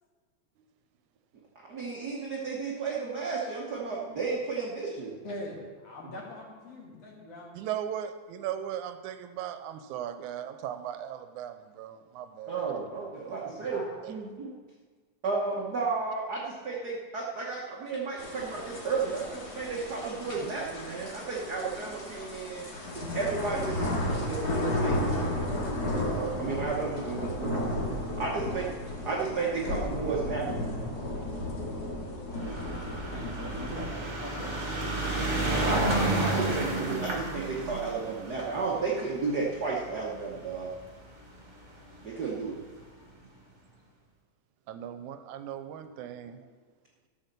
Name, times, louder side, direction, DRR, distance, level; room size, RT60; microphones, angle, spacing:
voice 1, 1.7-5.2 12.5-14.5 15.2-22.6 22.9-27.8 28.2-28.7 29.0-30.9 35.5-40.7 42.0-42.6, right 4 dB, 60° right, -3 dB, 1.0 m, -33 dB
voice 2, 5.2-7.5 12.6-12.7 13.4-14.0 27.0-27.2 33.1-34.6, left 1 dB, 55° left, -1 dB, 2.9 m, -43 dB
voice 3, 7.5-12.6 13.3-13.4 14.0-14.1 36.0-36.3 36.6-36.9 44.7-46.4, right 10 dB, 85° right, 9 dB, 2.1 m, -38 dB
sound 1, 18.2-33.9, left 1 dB, 35° left, 2.2 m, -33 dB
sound 2, 32.3-40.8 41.6-41.7 41.9-42.0 42.3-42.4, right 2 dB, 30° right, 1.8 m, -31 dB
13.0 x 6.3 x 6.7 m, 1.5 s
omnidirectional pair, 3.5 m